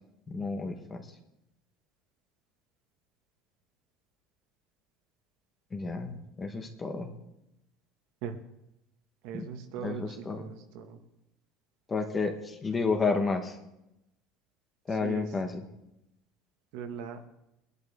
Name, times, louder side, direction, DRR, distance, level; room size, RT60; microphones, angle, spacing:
voice 1, 0.3-1.1 5.7-7.1 9.3-9.4 9.8-10.5 11.9-13.6 14.9-15.6, left 4 dB, 15° left, 5 dB, 1.1 m, -31 dB
voice 2, 9.2-11.0 14.9-15.3 16.7-17.3, right 8 dB, 65° right, 6 dB, 1.6 m, -40 dB
22.0 x 11.0 x 3.6 m, 0.88 s
cardioid pair, 170°, 0 cm